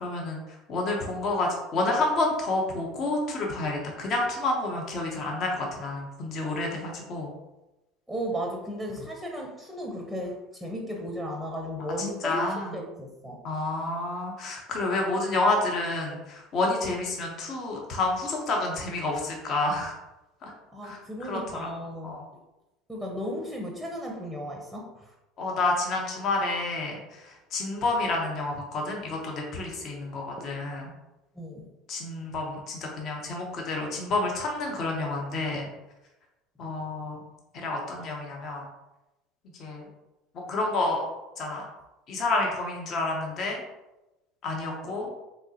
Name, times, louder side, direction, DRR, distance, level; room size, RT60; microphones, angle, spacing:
voice 1, 0.0-0.4 0.7-7.3 12.2-12.7 13.4-20.0 20.4-20.5 20.8-21.0 21.3-21.7 22.0-22.2 25.4-30.8 31.9-35.7 36.6-37.2 37.6-38.7 39.6-39.8 40.5-41.0 41.4-41.6 42.1-43.6 44.4-45.1, left 2 dB, 50° left, 0 dB, 0.9 m, -29 dB
voice 2, 8.1-13.4 20.7-22.2 22.9-25.1 30.4-30.5 31.3-31.7, equal, 5° left, 0 dB, 0.7 m, -35 dB
3.6 x 3.0 x 2.8 m, 0.98 s
hypercardioid pair, 75°, 0 cm